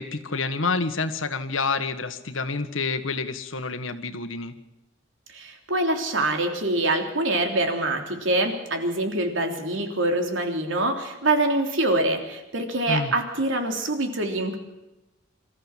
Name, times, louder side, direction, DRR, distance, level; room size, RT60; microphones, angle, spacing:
voice 1, 0.0-4.5 12.9-13.1, left 4 dB, 90° left, 10 dB, 1.6 m, -28 dB
voice 2, 5.3-14.6, right 2 dB, 75° right, 4 dB, 3.4 m, -25 dB
25.0 x 14.5 x 7.4 m, 1.0 s
head